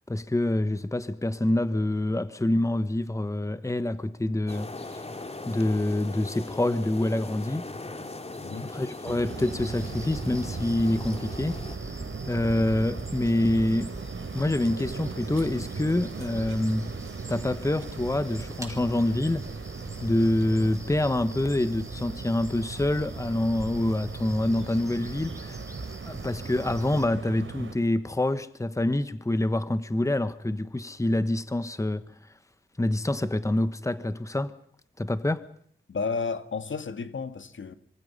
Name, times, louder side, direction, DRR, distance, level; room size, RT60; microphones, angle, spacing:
voice 1, 0.1-5.0 5.4-7.6 8.7-11.6 12.3-13.9 14.3-16.9 17.3-19.5 20.0-25.6 26.0-32.1 32.8-34.5 35.0-35.4, left 1 dB, 15° left, 1.3 m, -26 dB
sound 1, 4.5-11.8, left 2 dB, 30° left, 2.5 m, -40 dB
voice 2, 8.4-8.7 35.9-37.7, left 5 dB, 70° left, 1.9 m, -32 dB
sound 2, 9.0-27.7, right 5 dB, 70° right, 3.6 m, -39 dB
sound 3, 9.3-27.1, right 1 dB, 15° right, 4.3 m, -42 dB
26.0 x 25.5 x 5.6 m
wide cardioid pair, 105°, 21 cm